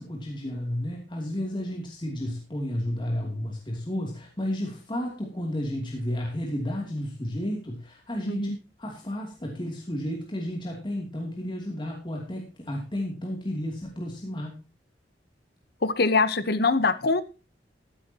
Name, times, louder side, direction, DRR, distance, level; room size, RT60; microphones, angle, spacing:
voice 1, 0.0-8.5 8.8-14.6, left 1 dB, 25° left, 0 dB, 2.8 m, -32 dB
voice 2, 15.8-17.2, left 3 dB, 60° left, 14 dB, 1.0 m, -23 dB
14.5 x 12.0 x 2.9 m, 0.31 s
head